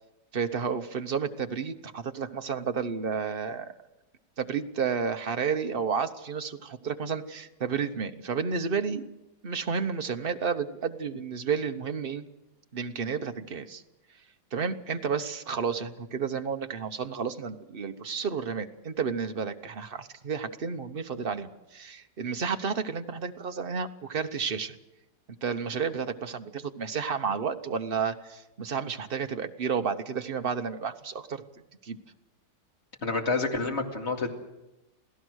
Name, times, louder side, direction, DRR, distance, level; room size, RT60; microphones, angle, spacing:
voice 1, 0.3-3.7 4.4-9.0 9.4-12.2 12.7-13.8 14.5-24.8 25.4-31.4 31.8-32.0, right 6 dB, 40° right, 7 dB, 1.0 m, -31 dB
voice 2, 33.0-34.3, left 3 dB, 40° left, 2 dB, 2.5 m, -28 dB
28.0 x 16.5 x 6.4 m, 0.98 s
omnidirectional pair, 1.9 m